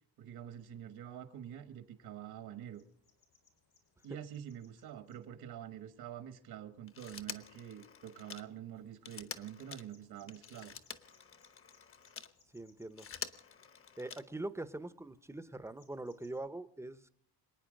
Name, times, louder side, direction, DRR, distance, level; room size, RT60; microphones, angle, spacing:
voice 1, 0.2-2.8 4.0-10.8, right 10 dB, 75° right, 9 dB, 1.5 m, -47 dB
sound 1, 0.6-16.4, left 5 dB, 75° left, 6.3 m, -74 dB
Telephone, 6.9-12.3 12.8-14.5 15.8-15.9, left 6 dB, 35° left, 0.9 m, -48 dB
voice 2, 12.5-13.1 14.0-17.1, right 2 dB, 5° right, 13 dB, 0.6 m, -43 dB
26.5 x 9.5 x 5.2 m, 0.70 s
cardioid pair, 165°, 38 cm